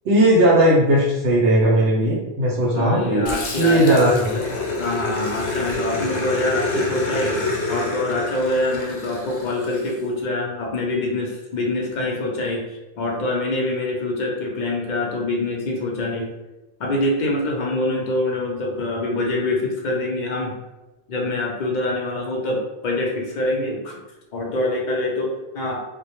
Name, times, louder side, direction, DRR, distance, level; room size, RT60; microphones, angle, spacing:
voice 1, 0.0-4.3, right 1 dB, 75° right, -5 dB, 0.8 m, -17 dB
voice 2, 2.7-4.4 4.8-7.4 7.7-12.6 13.0-16.3 16.8-20.6 21.1-24.0 24.3-25.8, left 2 dB, 55° left, -1 dB, 0.6 m, -25 dB
Growling, 3.3-9.9, left 2 dB, 85° left, 0.8 m, -27 dB
2.1 x 2.0 x 2.9 m, 1.0 s
omnidirectional pair, 1.1 m